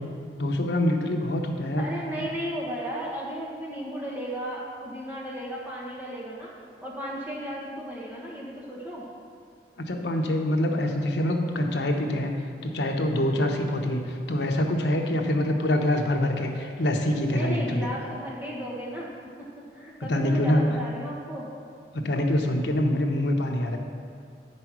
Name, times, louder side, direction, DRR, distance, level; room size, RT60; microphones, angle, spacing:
voice 1, 0.4-1.9 9.8-12.3 12.6-17.9 20.1-20.7 21.9-23.8, left 1 dB, 75° left, 2 dB, 1.0 m, -25 dB
voice 2, 1.8-6.5 6.8-9.0 17.3-19.1 19.4-21.5, equal, 10° right, -5 dB, 1.3 m, -35 dB
9.1 x 5.4 x 6.0 m, 2.4 s
head